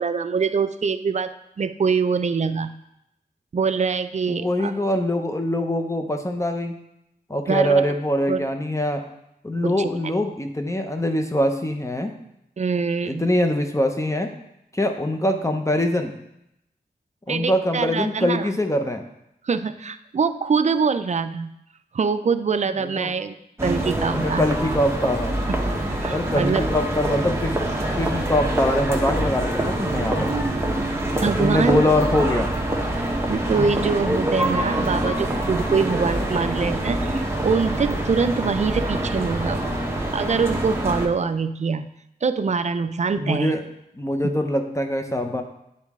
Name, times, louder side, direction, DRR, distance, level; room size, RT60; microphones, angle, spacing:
voice 1, 0.0-2.7 3.5-4.7 7.5-7.8 8.3-8.4 9.6-9.9 12.6-13.2 17.3-18.5 19.4-21.6 21.9-23.3 23.6-24.5 25.5-26.6 31.2-31.8 33.3-39.6 40.1-41.8 42.2-43.5, right 5 dB, 45° right, 10 dB, 0.4 m, -24 dB
voice 2, 4.3-6.8 7.3-9.0 9.4-12.1 13.1-14.3 14.7-16.1 17.3-19.0 22.8-23.1 24.1-25.4 26.1-27.6 28.0-30.3 31.2-32.5 43.2-43.6 43.9-45.4, left 1 dB, 20° left, 5 dB, 0.7 m, -23 dB
sound 1, 23.6-41.1, right 1 dB, 15° right, 1.0 m, -25 dB
9.4 x 4.0 x 3.6 m, 0.82 s
wide cardioid pair, 75°, 17 cm